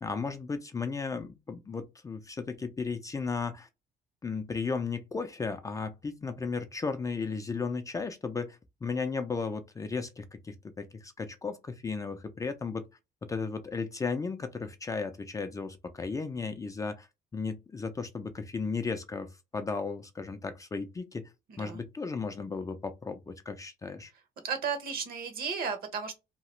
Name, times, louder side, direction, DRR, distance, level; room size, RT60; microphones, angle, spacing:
voice 1, 0.0-3.7 4.2-12.9 13.3-17.1 17.3-21.3 21.6-24.1, left 4 dB, 20° left, 0.4 m, -35 dB
voice 2, 21.5-21.8 24.4-26.2, right 6 dB, 60° right, 1.0 m, -34 dB
2.9 x 2.3 x 3.0 m
cardioid pair, 110°, 17 cm